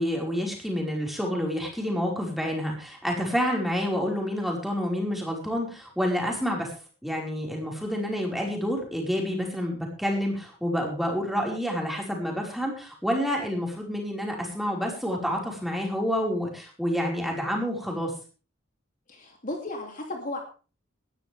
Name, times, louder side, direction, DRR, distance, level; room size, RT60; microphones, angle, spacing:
voice 1, 0.0-6.7 7.0-18.1, equal, ahead, 0 dB, 5.1 m, -28 dB
voice 2, 19.1-20.4, left 2 dB, 40° left, 2 dB, 3.0 m, -34 dB
19.0 x 13.0 x 3.5 m, 0.36 s
head